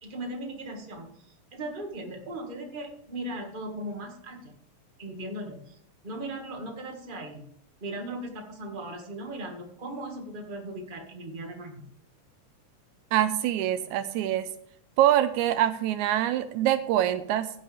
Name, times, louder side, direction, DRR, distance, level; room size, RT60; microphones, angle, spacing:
voice 1, 0.0-4.5 5.0-5.8 6.0-7.5 7.8-11.9, right 1 dB, 20° right, 1 dB, 1.6 m, -38 dB
voice 2, 13.1-14.5 15.0-17.5, right 12 dB, 80° right, 12 dB, 2.0 m, -24 dB
15.5 x 7.8 x 3.5 m, 0.69 s
omnidirectional pair, 3.5 m